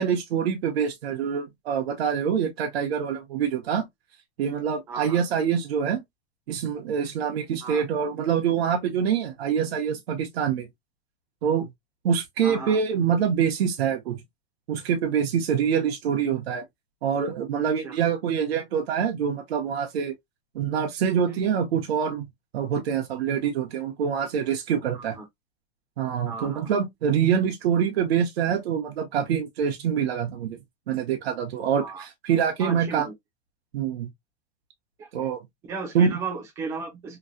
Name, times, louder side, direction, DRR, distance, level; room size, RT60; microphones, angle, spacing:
voice 1, 0.0-3.9 4.4-6.0 6.5-10.7 11.4-11.7 12.0-14.2 14.7-16.6 17.0-20.1 20.5-22.3 22.5-25.2 26.0-30.6 30.9-33.1 33.7-34.1 35.1-35.4 35.9-36.2, right 7 dB, 70° right, 0.9 m, -25 dB
voice 2, 4.9-5.2 7.6-7.8 12.4-12.8 17.8-18.0 24.9-25.3 26.3-26.8 31.8-32.0 32.6-33.1 35.0-35.1 35.7-37.2, right 4 dB, 10° right, 0.5 m, -35 dB
3.1 x 2.6 x 2.5 m
supercardioid pair, 175°, 32 cm